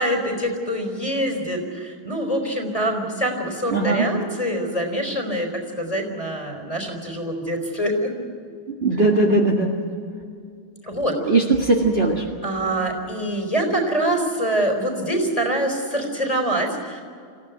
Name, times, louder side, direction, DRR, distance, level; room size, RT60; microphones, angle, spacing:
voice 1, 0.0-5.5 5.8-8.1 10.8-11.3 12.4-17.0, right 1 dB, 15° left, 3 dB, 4.4 m, -25 dB
voice 2, 3.7-4.1 8.8-9.8 11.2-12.3, right 2 dB, 30° right, 1 dB, 2.0 m, -19 dB
27.0 x 16.0 x 9.4 m, 2.3 s
omnidirectional pair, 2.3 m